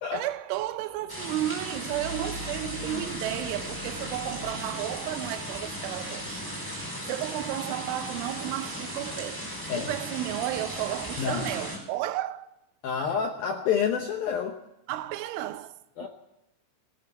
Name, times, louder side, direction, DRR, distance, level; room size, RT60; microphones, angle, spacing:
voice 1, 0.1-6.5 7.1-12.5 14.9-16.1, right 14 dB, 85° right, 3.2 m, -33 dB
sound 1, 1.1-11.8, equal, 5° left, 5.0 m, -36 dB
sound 2, 1.2-6.5, left 1 dB, 30° left, 5.3 m, -45 dB
voice 2, 11.2-11.5 12.8-14.6 16.0-16.1, left 7 dB, 75° left, 2.2 m, -28 dB
19.0 x 8.3 x 9.2 m
omnidirectional pair, 5.4 m